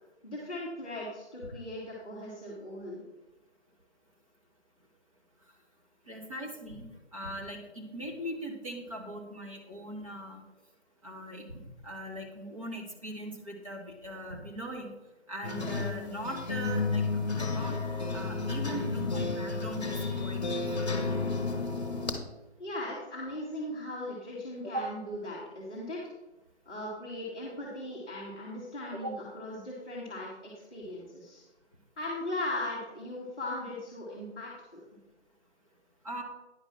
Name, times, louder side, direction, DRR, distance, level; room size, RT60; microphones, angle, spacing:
voice 1, 0.2-3.0 22.6-26.0 26.6-31.4 32.0-34.8, left 1 dB, 5° left, -12 dB, 1.1 m, -38 dB
voice 2, 6.1-6.8 7.1-10.4 11.0-14.9 15.3-17.0 17.3-20.4 20.8-21.0 24.7-24.9 29.0-29.1 36.0-36.2, right 1 dB, 30° right, -1 dB, 1.4 m, -40 dB
sound 1, 15.4-22.2, left 3 dB, 35° left, 1.2 m, -32 dB
9.9 x 5.0 x 5.7 m, 1.0 s
figure-of-eight pair, 160°, 35 cm